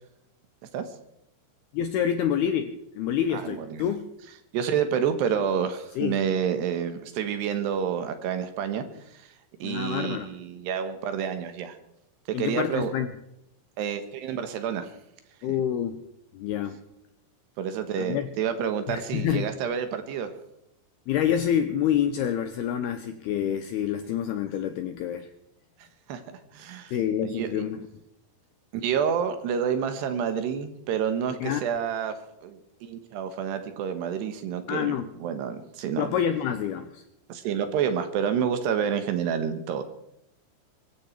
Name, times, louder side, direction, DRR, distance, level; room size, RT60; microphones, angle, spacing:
voice 1, 1.7-4.1 6.0-6.2 9.6-10.3 12.3-13.1 15.4-16.0 16.3-16.8 18.0-18.3 18.9-19.5 21.1-25.3 26.9-27.8 31.4-31.6 34.7-35.1 36.0-37.0, left 9 dB, 85° left, 9 dB, 2.3 m, -27 dB
voice 2, 3.3-3.8 4.5-8.8 9.1-9.3 9.6-11.8 12.3-12.9 13.8-14.9 17.6-20.3 25.8-26.9 27.2-27.6 28.7-35.0 35.2-36.1 37.3-39.8, right 8 dB, 70° right, 9 dB, 3.0 m, -29 dB
24.0 x 13.5 x 4.5 m, 0.82 s
omnidirectional pair, 5.5 m